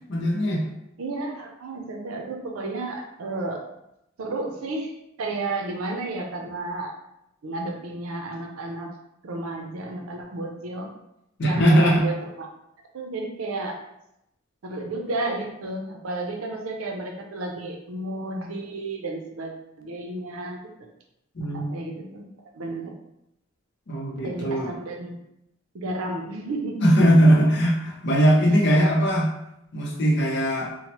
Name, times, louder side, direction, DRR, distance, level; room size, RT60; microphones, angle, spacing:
voice 1, 0.1-0.6 11.4-12.0 21.4-21.8 23.9-24.7 26.8-29.3 29.7-30.7, equal, 55° left, -1 dB, 0.6 m, -20 dB
voice 2, 1.0-3.6 4.2-4.9 5.2-6.9 7.4-8.9 9.2-10.9 11.4-12.5 12.9-13.8 14.6-20.6 21.5-22.2 22.5-22.9 24.2-25.2 25.7-27.1, right 2 dB, 90° right, 2 dB, 0.5 m, -32 dB
3.0 x 2.1 x 2.9 m, 0.83 s
head